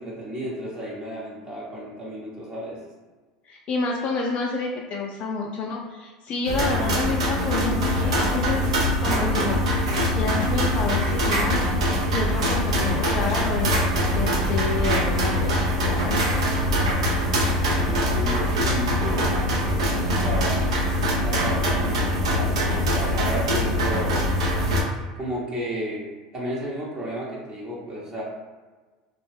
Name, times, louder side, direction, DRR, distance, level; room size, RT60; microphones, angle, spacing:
voice 1, 0.0-2.9 17.8-19.4 19.8-20.6 21.1-24.2 25.1-28.2, equal, 25° right, -5 dB, 0.8 m, -33 dB
voice 2, 3.5-8.7 9.0-11.6 12.1-13.8 14.1-16.3, left 3 dB, 40° left, -1 dB, 0.4 m, -29 dB
sound 1, 6.4-24.8, equal, 80° right, 0.6 m, -23 dB
2.5 x 2.1 x 3.4 m, 1.3 s
hypercardioid pair, 80°, 3 cm